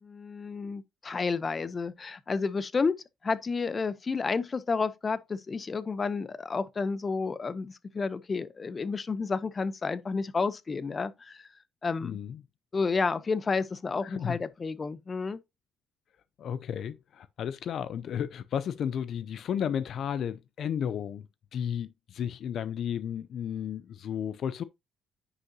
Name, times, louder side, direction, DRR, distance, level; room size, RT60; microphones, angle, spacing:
voice 1, 0.0-2.9 3.2-11.5 11.8-12.2 12.7-15.4, left 4 dB, 35° left, 0.7 m, -31 dB
voice 2, 12.0-12.4 14.0-14.4 16.4-24.6, left 8 dB, 65° left, 0.5 m, -33 dB
9.7 x 5.4 x 2.8 m
cardioid pair, 90°, 0 cm